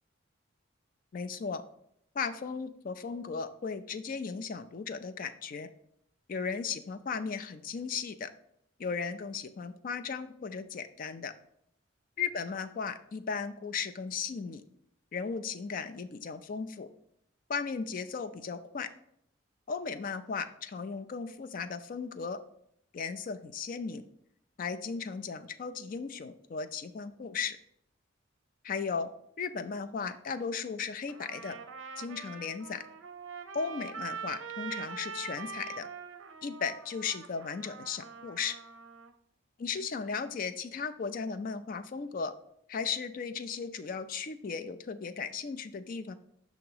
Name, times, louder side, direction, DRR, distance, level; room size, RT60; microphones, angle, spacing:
voice 1, 1.1-1.6 2.1-5.7 6.3-8.3 8.8-11.3 12.2-14.6 15.1-16.9 17.5-18.9 19.7-22.4 22.9-24.0 24.6-27.6 28.6-29.1 29.4-31.6 32.0-32.8 33.5-35.9 36.4-38.6 39.6-42.3 42.7-46.2, left 5 dB, 45° left, 11 dB, 0.3 m, -36 dB
Trumpet, 31.1-39.1, right 6 dB, 75° right, 0.5 m, -43 dB
6.0 x 2.9 x 5.4 m, 0.72 s
head